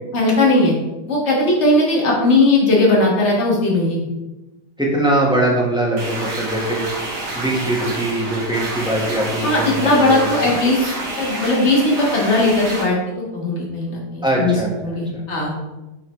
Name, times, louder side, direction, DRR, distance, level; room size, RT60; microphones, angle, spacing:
voice 1, 0.1-0.7 1.1-4.0 9.4-13.0 13.3-14.6 14.8-15.5, left 2 dB, 45° left, -3 dB, 1.8 m, -18 dB
voice 2, 4.8-6.9 7.3-10.4 14.2-15.2, right 1 dB, 5° right, -4 dB, 1.2 m, -21 dB
sound 1, 6.0-12.8, right 2 dB, 80° right, 2.1 m, -28 dB
9.0 x 3.9 x 3.2 m, 1.0 s
omnidirectional pair, 1.7 m